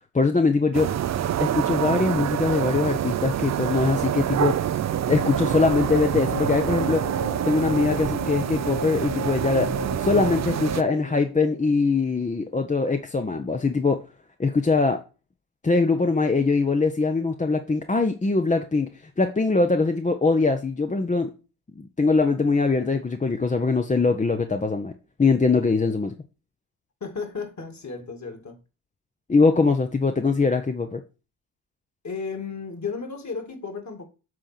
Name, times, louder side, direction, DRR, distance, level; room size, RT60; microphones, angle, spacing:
voice 1, 0.1-0.9 1.4-4.5 5.1-7.1 7.4-9.7 10.0-14.0 14.4-15.0 15.6-18.9 19.2-21.3 21.8-24.9 25.2-26.1 29.3-31.0, left 4 dB, 15° left, 0.7 m, -22 dB
sound 1, 0.7-10.8, right 10 dB, 35° right, 0.5 m, -26 dB
sound 2, 4.8-12.1, left 2 dB, 90° left, 4.5 m, -36 dB
voice 2, 27.0-28.6 32.0-34.1, left 5 dB, 35° left, 2.3 m, -34 dB
7.6 x 3.8 x 5.8 m
supercardioid pair, 55°, 46 cm